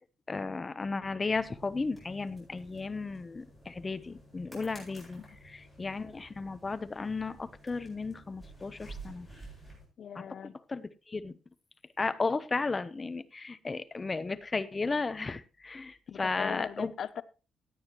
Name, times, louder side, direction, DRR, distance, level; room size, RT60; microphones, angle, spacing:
voice 1, 0.3-9.3 10.2-10.3 10.7-11.3 12.0-16.9, left 3 dB, 25° left, 0.7 m, -34 dB
sound 1, 1.3-9.9, right 2 dB, 10° right, 7.3 m, -52 dB
voice 2, 10.0-10.6 16.1-17.2, left 8 dB, 55° left, 0.6 m, -39 dB
16.5 x 9.3 x 3.0 m
cardioid pair, 140°, 0 cm